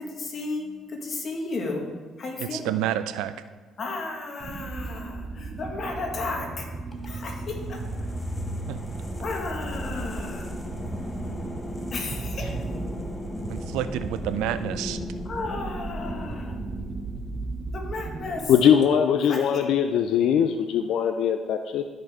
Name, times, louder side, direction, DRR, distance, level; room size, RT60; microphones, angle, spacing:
voice 1, 0.0-1.9 2.2-2.7 3.8-6.7 7.0-7.8 9.2-10.5 11.9-12.6 15.2-16.6 17.7-18.5 19.3-19.7, left 3 dB, 50° left, 1 dB, 1.8 m, -33 dB
voice 2, 2.4-3.3 8.7-8.8 13.5-15.0, right 12 dB, 85° right, 12 dB, 0.4 m, -29 dB
sound 1, 4.4-18.5, right 3 dB, 40° right, 0.7 m, -35 dB
sound 2, 6.9-18.0, left 2 dB, 20° left, 1.2 m, -38 dB
voice 3, 18.5-21.8, left 8 dB, 70° left, 7 dB, 0.4 m, -21 dB
11.5 x 5.5 x 3.7 m, 1.4 s
supercardioid pair, 80°, 0 cm